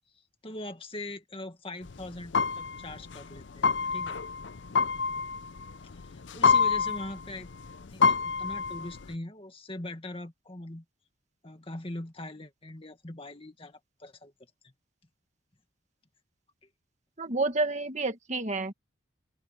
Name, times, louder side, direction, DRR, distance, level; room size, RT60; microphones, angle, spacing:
voice 1, 0.4-4.2 5.9-7.5 7.8-10.8 11.4-14.3 14.6-14.7, left 1 dB, 30° left, 2.0 m, -41 dB
sound 1, 1.9-9.1, left 5 dB, 65° left, 0.6 m, -28 dB
voice 2, 17.2-18.7, right 3 dB, 35° right, 1.8 m, -29 dB
open air
head